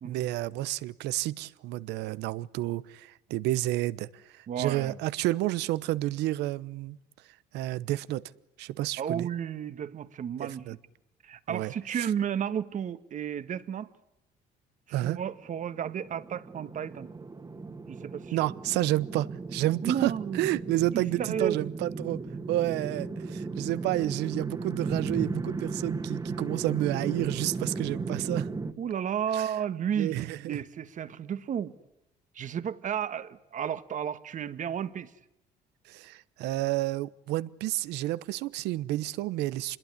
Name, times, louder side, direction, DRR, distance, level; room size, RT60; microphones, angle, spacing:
voice 1, 0.0-7.0 7.5-8.2 8.6-9.3 10.4-10.7 11.5-11.7 14.9-15.2 18.3-22.2 22.5-28.5 29.3-29.5 30.0-30.6 35.9-39.8, right 16 dB, 85° right, 1.0 m, -30 dB
voice 2, 4.5-4.9 9.0-10.7 11.2-13.9 14.9-17.1 17.9-18.4 19.8-20.5 21.2-21.7 28.8-31.7 32.3-35.1, right 8 dB, 50° right, 1.6 m, -32 dB
sound 1, 15.5-28.7, right 3 dB, 20° right, 1.9 m, -36 dB
27.5 x 21.5 x 9.9 m
cardioid pair, 110°, 17 cm